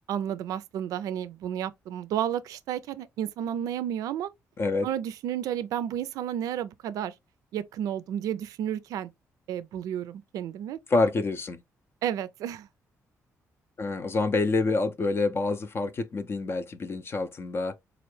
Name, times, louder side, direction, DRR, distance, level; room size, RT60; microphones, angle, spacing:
voice 1, 0.1-4.3 4.8-7.1 7.5-9.1 9.5-10.8 12.0-12.7, right 10 dB, 90° right, 0.3 m, -32 dB
voice 2, 4.6-4.9 10.9-11.6 13.8-17.8, left 3 dB, 45° left, 0.5 m, -27 dB
4.1 x 2.4 x 3.2 m
cardioid pair, 95°, 6 cm